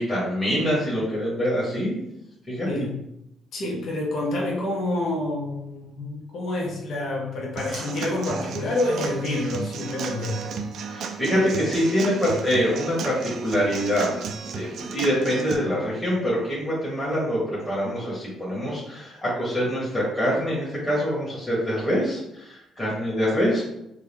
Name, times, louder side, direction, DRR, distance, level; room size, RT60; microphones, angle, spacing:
voice 1, 0.0-2.0 2.5-2.7 7.7-7.9 10.9-14.1 14.5-23.6, equal, 10° left, -8 dB, 1.3 m, -25 dB
voice 2, 3.5-10.4, left 2 dB, 60° left, -2 dB, 0.9 m, -28 dB
Human voice / Acoustic guitar / Drum, 7.6-15.6, right 5 dB, 65° right, 0.3 m, -34 dB
3.7 x 2.3 x 3.4 m, 0.83 s
cardioid pair, 110°, 0 cm